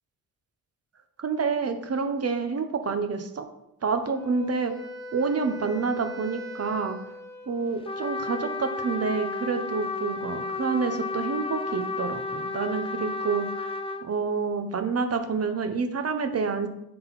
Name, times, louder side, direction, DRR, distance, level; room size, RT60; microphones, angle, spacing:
voice 1, 1.2-3.5 3.8-4.7 5.1-7.0 7.5-13.7 14.0-16.7, right 5 dB, 40° right, 8 dB, 0.9 m, -28 dB
Wind instrument woodwind instrument, 4.0-8.1, left 1 dB, 10° right, 1.9 m, -41 dB
Trumpet, 7.9-14.1, left 3 dB, 15° left, 0.4 m, -32 dB
9.8 x 3.9 x 4.1 m, 0.84 s
cardioid pair, 95°, 38 cm